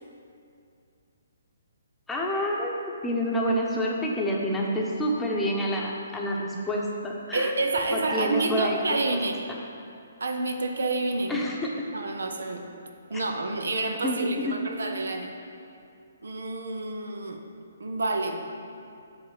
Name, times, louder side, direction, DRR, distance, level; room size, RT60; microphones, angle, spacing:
voice 1, 2.1-7.5 7.9-8.8 11.3-11.7 13.1-13.2 14.0-14.5, equal, 5° left, -3 dB, 0.9 m, -28 dB
voice 2, 7.3-9.4 10.2-11.4 11.9-12.7 13.1-15.3 16.2-17.4 17.8-18.6, right 2 dB, 80° right, 4 dB, 0.7 m, -28 dB
7.9 x 3.5 x 6.4 m, 2.5 s
hypercardioid pair, 145°, 0 cm